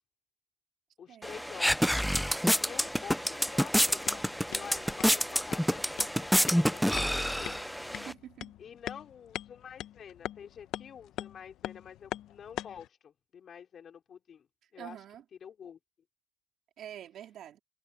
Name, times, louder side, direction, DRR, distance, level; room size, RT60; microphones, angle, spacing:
voice 1, 1.0-2.0 2.6-7.6 8.6-14.5 14.7-15.0 15.4-15.8, left 8 dB, 60° left, 4.3 m, -48 dB
sound 1, 1.2-8.1, equal, ahead, 0.4 m, -28 dB
sound 2, 3.8-12.9, left 13 dB, 90° left, 0.8 m, -44 dB
voice 2, 8.0-8.5 14.8-15.2 16.8-17.6, right 10 dB, 75° right, 3.0 m, -46 dB
cardioid pair, 90°, 0 cm